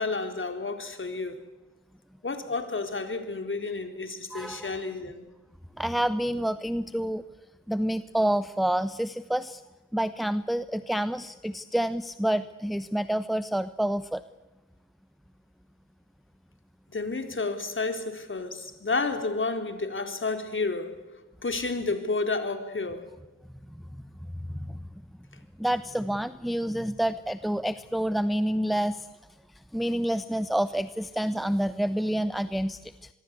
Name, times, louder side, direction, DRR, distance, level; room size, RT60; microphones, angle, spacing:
voice 1, 0.0-1.4 2.2-5.3 16.9-21.0 21.4-23.1, left 3 dB, 30° left, 4.1 m, -31 dB
voice 2, 4.3-4.7 5.8-7.2 7.7-9.6 9.9-14.2 24.5-24.8 25.6-29.1 29.7-33.1, right 1 dB, ahead, 0.9 m, -28 dB
25.0 x 22.5 x 8.4 m
hypercardioid pair, 45°, 39 cm